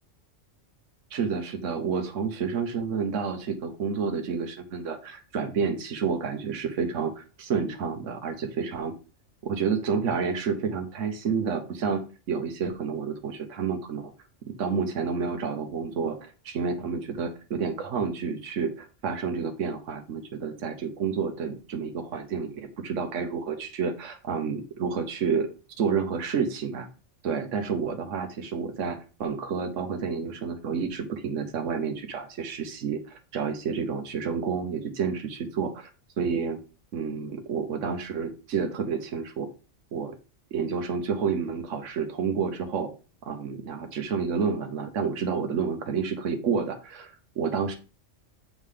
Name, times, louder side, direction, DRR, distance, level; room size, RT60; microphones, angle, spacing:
voice 1, 1.1-8.9 9.4-14.1 14.6-25.5 25.8-26.9 27.2-35.9 36.2-36.6 36.9-39.5 39.9-40.1 40.5-42.9 43.2-47.7, right 6 dB, 75° right, 5 dB, 1.2 m, -29 dB
8.6 x 3.3 x 5.5 m, 0.34 s
omnidirectional pair, 1.3 m